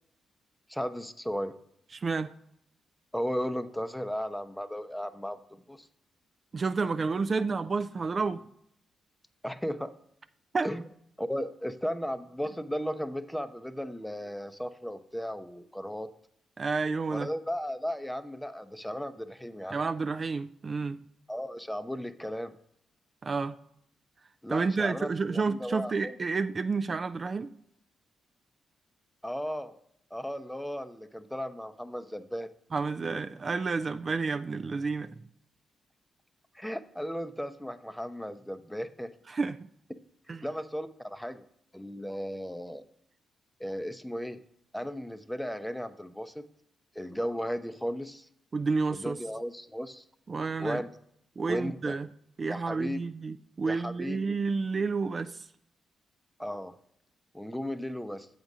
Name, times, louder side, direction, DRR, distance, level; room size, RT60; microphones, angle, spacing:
voice 1, 0.7-1.5 3.1-5.9 9.4-9.9 10.6-10.8 11.2-16.1 17.1-19.8 21.3-22.5 24.4-26.2 29.2-29.8 30.1-32.5 36.5-39.1 40.4-41.4 41.7-42.8 43.6-44.4 44.7-46.4 46.9-48.3 48.9-50.0 50.6-50.9 51.5-52.0 52.5-53.0 53.7-54.2 56.4-56.7 57.3-58.3, equal, 5° left, 11 dB, 0.6 m, -35 dB
voice 2, 1.9-2.3 6.5-8.4 10.5-10.7 16.6-17.3 19.7-21.0 23.2-23.5 24.5-27.5 32.7-35.1 39.3-39.6 40.3-40.4 48.5-49.2 50.3-50.8 51.4-52.1 52.4-55.4, right 4 dB, 45° right, 9 dB, 0.3 m, -30 dB
7.9 x 4.0 x 4.8 m, 0.72 s
hypercardioid pair, 45°, 0 cm